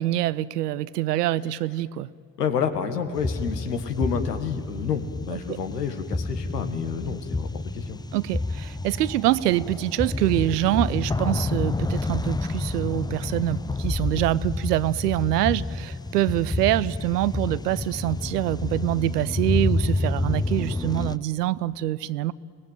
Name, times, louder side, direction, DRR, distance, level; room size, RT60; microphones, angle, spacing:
voice 1, 0.0-2.1 5.5-5.6 8.1-22.3, right 14 dB, 80° right, 20 dB, 0.7 m, -25 dB
voice 2, 2.4-8.0, left 7 dB, 80° left, 8 dB, 1.5 m, -29 dB
sound 1, 3.2-21.2, left 2 dB, 10° left, 0.7 m, -29 dB
29.5 x 18.5 x 9.2 m, 2.3 s
figure-of-eight pair, 40°, 47 cm